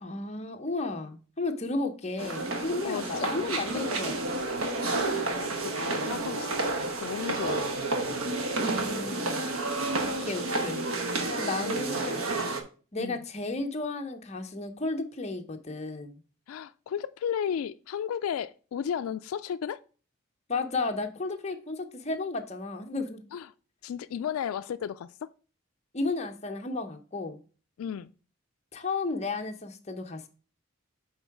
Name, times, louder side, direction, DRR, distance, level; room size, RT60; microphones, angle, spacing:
voice 1, 0.0-4.4 8.6-9.4 10.0-10.8 11.3-12.4 12.9-16.2 20.5-23.2 25.9-27.4 28.7-30.3, left 3 dB, 30° left, 0.7 m, -33 dB
sound 1, 2.2-12.6, right 2 dB, 90° right, 1.1 m, -30 dB
voice 2, 2.8-3.3 5.0-6.5 7.0-7.6 11.6-11.8 13.0-13.2 16.5-19.8 23.3-23.5 23.8-25.3 27.8-28.1, left 8 dB, 90° left, 0.3 m, -34 dB
8.0 x 3.9 x 4.6 m
head